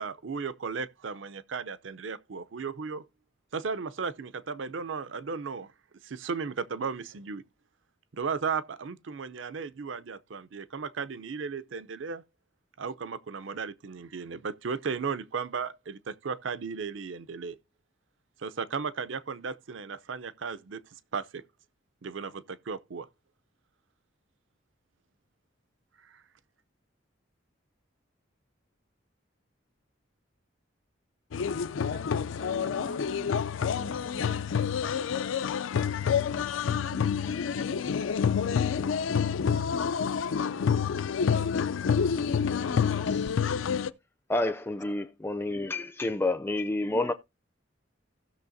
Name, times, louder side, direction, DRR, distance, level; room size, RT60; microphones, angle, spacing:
voice 1, 0.0-3.0 3.5-5.7 6.0-7.4 8.1-12.2 12.8-17.6 18.4-20.8 21.1-21.4 22.0-23.1 26.0-26.2, right 5 dB, 80° right, 0.6 m, -35 dB
sound 1, 31.3-43.9, left 7 dB, 90° left, 0.4 m, -28 dB
voice 2, 31.9-33.4 33.7-34.6 36.3-38.3 41.4-41.5 42.6-43.4 46.9-47.1, left 1 dB, 65° left, 0.9 m, -45 dB
voice 3, 44.3-47.1, left 2 dB, 10° left, 0.4 m, -29 dB
16.0 x 6.3 x 2.6 m
head